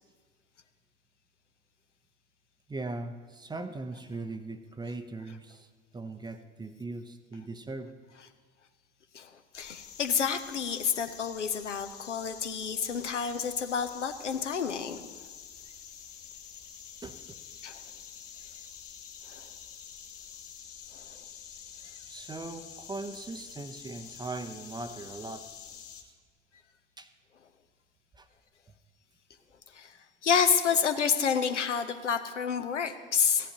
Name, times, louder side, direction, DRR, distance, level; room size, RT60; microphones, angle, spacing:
voice 1, 2.7-5.7 5.9-7.9 17.0-17.4 22.1-25.5 27.0-27.1 28.1-28.3, right 3 dB, 10° right, 10 dB, 0.6 m, -39 dB
voice 2, 9.1-15.1 17.6-17.8 19.3-19.5 20.9-21.2 29.7-30.0 30.2-33.5, left 7 dB, 80° left, 8 dB, 0.7 m, -29 dB
sound 1, 9.5-26.0, left 8 dB, 40° left, 1.4 m, -47 dB
16.0 x 10.5 x 2.9 m, 1.5 s
figure-of-eight pair, 65°, 35 cm